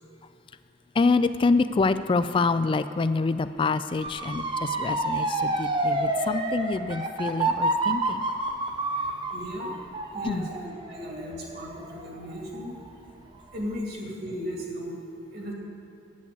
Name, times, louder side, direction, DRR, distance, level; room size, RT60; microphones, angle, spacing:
voice 1, 1.0-8.2 10.2-10.5, left 3 dB, 30° left, 12 dB, 0.3 m, -26 dB
Motor vehicle (road) / Siren, 4.0-12.9 13.3-13.7, right 2 dB, 25° right, 0.8 m, -29 dB
voice 2, 8.9-9.8 10.1-12.7 13.5-15.0 15.3-15.5, equal, 55° right, -1 dB, 2.2 m, -36 dB
8.5 x 8.4 x 8.2 m, 2.6 s
head